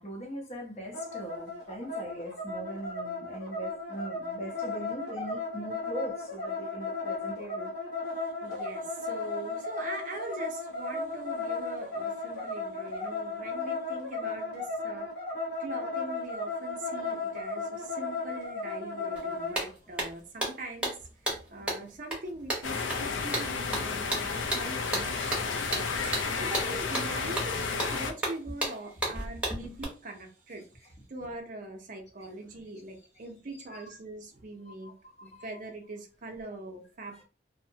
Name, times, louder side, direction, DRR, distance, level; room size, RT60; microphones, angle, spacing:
voice 1, 0.0-7.7 17.3-17.6 18.6-18.7 33.7-33.8 34.6-35.5 37.1-37.2, right 1 dB, 35° left, 0.7 m, -41 dB
sound 1, 0.9-19.6, left 3 dB, 60° left, 0.9 m, -35 dB
voice 2, 8.4-15.1 15.6-20.9 21.5-34.9 35.2-37.2, right 2 dB, 45° right, 0.5 m, -42 dB
sound 2, 19.2-19.3 19.5-29.8, right 1 dB, 5° right, 0.8 m, -34 dB
sound 3, 22.6-28.1, left 5 dB, 85° left, 0.4 m, -32 dB
2.6 x 2.1 x 2.7 m
head